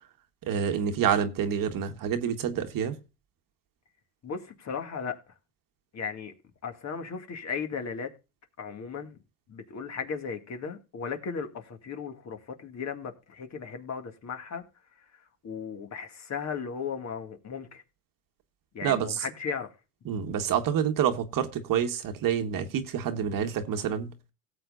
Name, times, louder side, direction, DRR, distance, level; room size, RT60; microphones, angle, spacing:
voice 1, 0.5-2.9 18.8-19.2 20.0-24.1, right 8 dB, 50° right, 1.6 m, -28 dB
voice 2, 4.2-5.2 5.9-6.3 6.6-8.1 8.6-9.2 9.5-14.6 15.4-17.8 18.7-19.7, left 6 dB, 40° left, 2.3 m, -36 dB
17.5 x 7.7 x 2.6 m
supercardioid pair, 95°, 43 cm